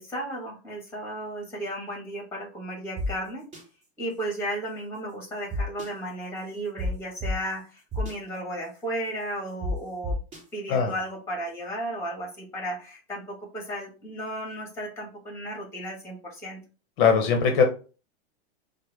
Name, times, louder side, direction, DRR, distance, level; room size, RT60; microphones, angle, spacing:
voice 1, 0.0-3.5 4.0-10.2 10.5-16.6, right 1 dB, 10° left, -1 dB, 1.4 m, -34 dB
sound 1, 3.0-3.1 3.5-3.6 5.5-5.9 6.8-6.9 7.2-7.3 7.9-8.1 9.6-9.7 10.0-10.4, equal, 20° right, 1.4 m, -30 dB
voice 2, 17.0-17.6, left 6 dB, 50° left, 4 dB, 0.8 m, -20 dB
4.6 x 2.1 x 3.3 m, 0.35 s
supercardioid pair, 155°, 31 cm